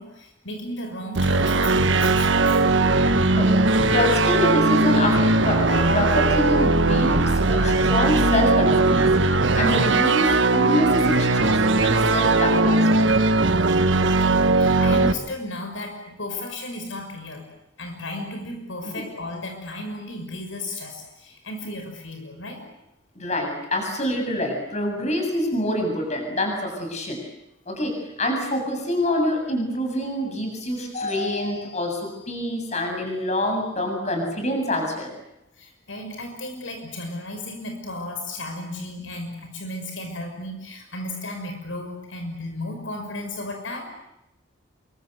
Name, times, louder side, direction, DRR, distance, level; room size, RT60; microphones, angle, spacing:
voice 1, 0.0-2.6 13.8-17.5 17.8-22.6 35.6-43.9, left 1 dB, 75° left, 4 dB, 6.3 m, -34 dB
sound 1, 1.1-15.1, right 3 dB, 70° right, 1.5 m, -19 dB
voice 2, 3.9-9.1 9.6-13.0 18.8-18.9 23.2-27.2 27.7-35.1, left 1 dB, 35° left, 3 dB, 7.8 m, -26 dB
28.0 x 26.0 x 8.1 m, 0.87 s
head